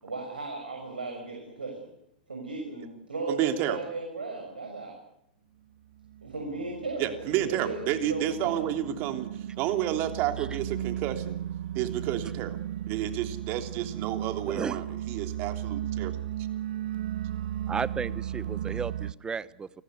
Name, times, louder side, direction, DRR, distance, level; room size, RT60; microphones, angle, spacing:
voice 1, 0.0-1.9 2.3-5.0 6.2-8.6, right 3 dB, 85° right, 2 dB, 6.5 m, -36 dB
voice 2, 3.3-3.8 7.0-9.3 9.6-11.4 11.7-12.6 12.9-16.1, right 11 dB, 40° right, 7 dB, 3.2 m, -30 dB
sound 1, 5.9-19.1, right 11 dB, 65° right, 0.9 m, -35 dB
voice 3, 14.5-14.8 17.7-19.8, right 5 dB, 15° right, 19 dB, 1.0 m, -34 dB
29.0 x 20.0 x 8.2 m, 0.78 s
figure-of-eight pair, 100°, 5 cm